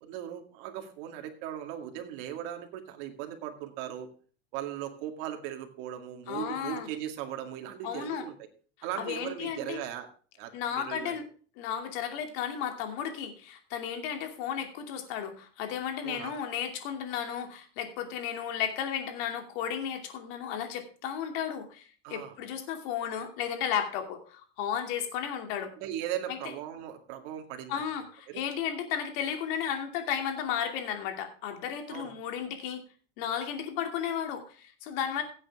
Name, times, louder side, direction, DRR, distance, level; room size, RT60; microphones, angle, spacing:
voice 1, 0.0-4.1 4.5-8.5 8.8-10.1 10.4-11.1 16.0-16.3 22.0-22.3 25.8-27.8 28.3-28.4 31.9-32.1, right 11 dB, 70° right, 4 dB, 2.1 m, -38 dB
voice 2, 6.3-6.9 7.8-8.2 9.0-9.8 10.5-11.2 11.6-25.7 26.3-26.4 27.7-32.8 33.2-35.2, left 8 dB, 70° left, 5 dB, 2.7 m, -34 dB
16.5 x 8.1 x 3.6 m, 0.40 s
cardioid pair, 155°, 29 cm